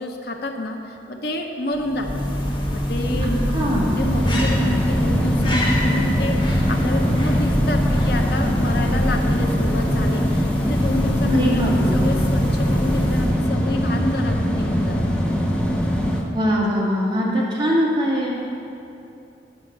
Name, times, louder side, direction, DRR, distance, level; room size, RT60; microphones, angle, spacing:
voice 1, 0.0-2.2 2.7-15.2, left 2 dB, 60° left, 3 dB, 0.7 m, -29 dB
sound 1, 1.7-13.6, equal, 25° left, 1.2 m, -24 dB
sound 2, 2.5-16.2, equal, 5° left, 0.7 m, -22 dB
voice 2, 3.2-3.9 11.3-12.0 16.3-18.3, equal, 25° right, -7 dB, 2.0 m, -22 dB
9.5 x 5.4 x 6.6 m, 2.7 s
head